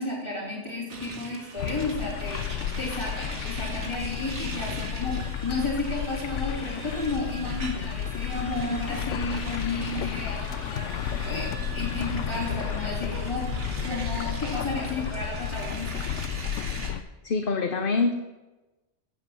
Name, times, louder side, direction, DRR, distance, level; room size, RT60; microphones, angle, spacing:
voice 1, 0.0-13.5 13.8-16.1, left 2 dB, 25° left, -4 dB, 3.7 m, -33 dB
sound 1, 0.9-16.9, right 3 dB, 70° right, 2.0 m, -41 dB
sound 2, 1.6-17.0, left 9 dB, 80° left, 1.0 m, -32 dB
voice 2, 17.2-18.1, left 4 dB, 50° left, 6 dB, 1.0 m, -25 dB
10.0 x 7.8 x 7.6 m, 1.1 s
omnidirectional pair, 1.2 m